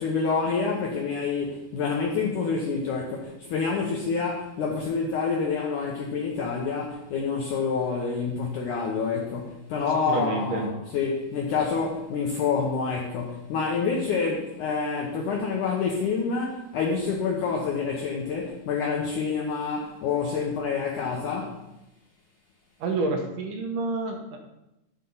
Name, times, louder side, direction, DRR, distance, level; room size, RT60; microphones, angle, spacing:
voice 1, 0.0-21.6, left 5 dB, 70° left, -2 dB, 2.1 m, -27 dB
voice 2, 10.1-10.7 22.8-24.4, right 3 dB, 70° right, 3 dB, 2.3 m, -28 dB
11.5 x 5.4 x 5.5 m, 0.92 s
omnidirectional pair, 4.5 m